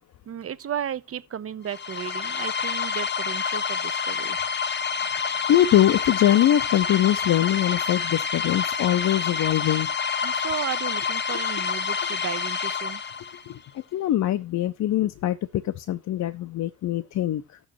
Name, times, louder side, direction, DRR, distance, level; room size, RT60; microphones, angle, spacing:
voice 1, 0.3-4.4 10.2-13.0, right 9 dB, 50° right, 0.9 m, -34 dB
sound 1, 1.7-13.5, left 6 dB, 35° left, 1.0 m, -28 dB
voice 2, 5.5-9.9 13.5-13.6 13.9-17.6, left 12 dB, 65° left, 0.7 m, -22 dB
15.0 x 6.4 x 3.1 m
cardioid pair, 90°, 30 cm